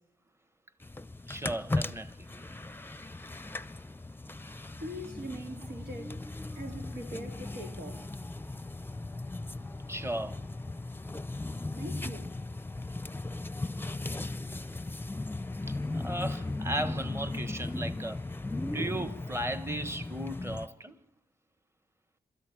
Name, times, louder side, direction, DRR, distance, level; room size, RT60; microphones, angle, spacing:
sound 1, 0.8-20.7, left 2 dB, 15° left, 0.7 m, -37 dB
voice 1, 1.3-2.3 9.9-10.4 15.7-18.2 18.6-21.0, right 1 dB, 15° right, 1.3 m, -36 dB
voice 2, 4.8-6.2 6.6-8.1 11.7-12.4, right 1 dB, 80° right, 4.0 m, -42 dB
27.0 x 13.0 x 9.1 m
cardioid pair, 60°, 16 cm